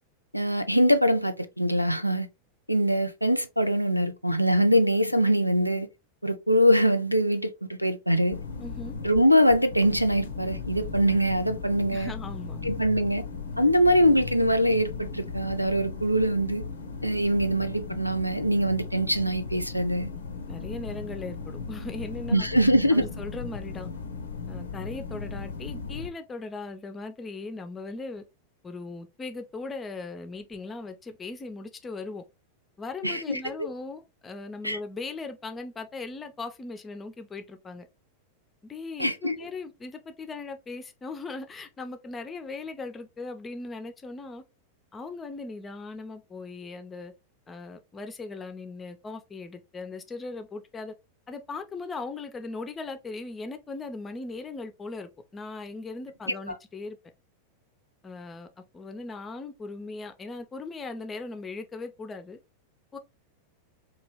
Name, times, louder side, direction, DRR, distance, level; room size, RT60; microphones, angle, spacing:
voice 1, 0.3-2.3 2.7-5.9 6.2-8.4 9.0-12.1 12.6-13.2 13.6-16.6 17.0-20.1 22.3-23.1 33.0-33.4 34.6-34.8 39.0-39.3, equal, 90° right, 0.3 m, -23 dB
sound 1, 8.3-26.1, left 5 dB, 70° left, 0.5 m, -37 dB
voice 2, 8.6-8.9 11.9-12.8 20.5-22.5 22.9-23.9 24.5-28.2 28.6-32.2 32.8-37.9 38.6-44.4 44.9-47.1 47.5-50.9 51.3-57.0 58.0-58.5 58.7-62.4 62.9-63.0, left 3 dB, 20° left, 0.5 m, -38 dB
3.0 x 2.3 x 3.1 m
figure-of-eight pair, 90°, 0 cm